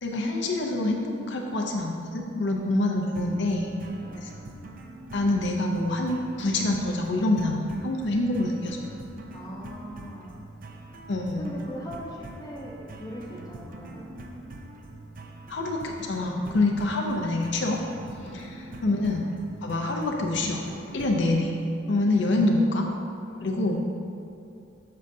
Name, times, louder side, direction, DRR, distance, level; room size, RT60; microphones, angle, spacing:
voice 1, 0.0-3.7 4.2-4.3 5.1-8.8 11.1-11.5 15.5-17.8 18.3-19.3 19.6-20.6 20.9-21.6 21.9-22.9 23.4-23.9, left 2 dB, 60° left, 1 dB, 0.5 m, -26 dB
sound 1, 3.2-21.3, right 2 dB, 45° right, 0.5 m, -44 dB
voice 2, 3.9-4.3 9.3-10.3 11.4-14.2 18.2-18.6 21.0-21.2 21.8-22.0 23.3-23.5, equal, 20° left, -3 dB, 0.7 m, -41 dB
7.5 x 6.5 x 2.7 m, 2.6 s
head